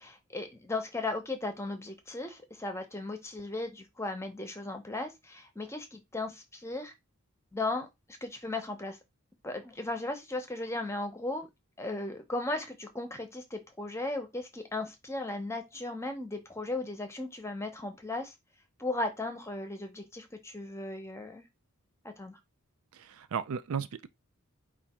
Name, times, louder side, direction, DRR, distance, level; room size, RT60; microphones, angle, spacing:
voice 1, 0.0-6.9 7.5-7.9 8.2-9.0 9.4-11.5 11.8-18.3 18.8-21.4 22.0-22.4, left 2 dB, 10° left, 0.8 m, -36 dB
voice 2, 22.9-24.1, right 6 dB, 70° right, 0.4 m, -35 dB
4.8 x 2.5 x 4.2 m
head